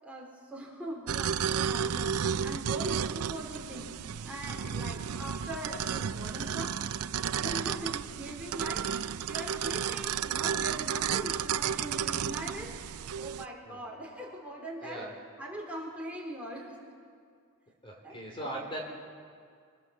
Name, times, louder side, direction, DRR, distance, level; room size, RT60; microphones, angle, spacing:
voice 1, 0.0-3.9 4.2-6.8 7.4-12.8 13.2-15.1 15.4-16.8 18.0-18.5, right 1 dB, 5° right, -2 dB, 4.1 m, -41 dB
sound 1, 1.1-13.4, right 8 dB, 80° right, 0.5 m, -32 dB
voice 2, 14.8-15.1 17.8-18.8, right 1 dB, 25° left, 0 dB, 3.6 m, -40 dB
26.5 x 22.0 x 7.2 m, 2.2 s
head